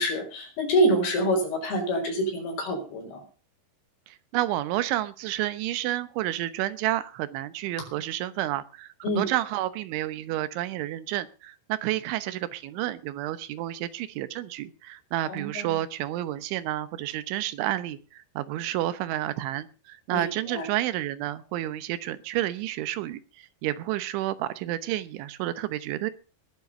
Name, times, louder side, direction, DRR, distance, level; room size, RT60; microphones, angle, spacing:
voice 1, 0.0-3.2 9.0-9.3 15.3-15.7 20.1-20.7, right 1 dB, 55° left, 2 dB, 6.7 m, -26 dB
voice 2, 4.1-26.1, right 14 dB, 85° right, 14 dB, 3.4 m, -30 dB
20.0 x 7.6 x 6.5 m, 0.35 s
omnidirectional pair, 5.3 m